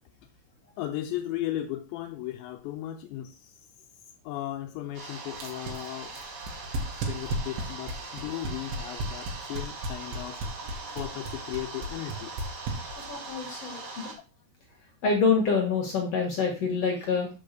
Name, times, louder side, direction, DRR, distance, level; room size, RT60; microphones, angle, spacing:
voice 1, 0.8-3.6 4.2-6.1 7.1-10.4 11.0-12.3, left 13 dB, 85° left, 2.9 m, -36 dB
sound 1, 4.9-14.1, right 3 dB, 45° right, 2.0 m, -41 dB
sound 2, 5.3-13.3, right 2 dB, 70° right, 3.7 m, -33 dB
voice 2, 13.1-14.1 15.0-17.3, left 5 dB, 55° left, 1.8 m, -26 dB
7.6 x 5.0 x 6.6 m
omnidirectional pair, 5.1 m